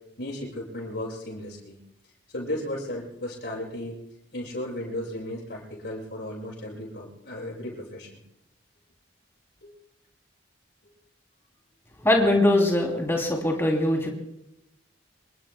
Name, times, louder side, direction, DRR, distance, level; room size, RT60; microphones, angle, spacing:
voice 1, 0.2-1.8 2.3-4.0 4.3-8.2 9.6-9.7, left 1 dB, 65° left, -4 dB, 6.9 m, -35 dB
voice 2, 12.0-14.1, left 1 dB, 15° left, 0 dB, 3.0 m, -22 dB
27.0 x 23.0 x 2.2 m, 0.85 s
head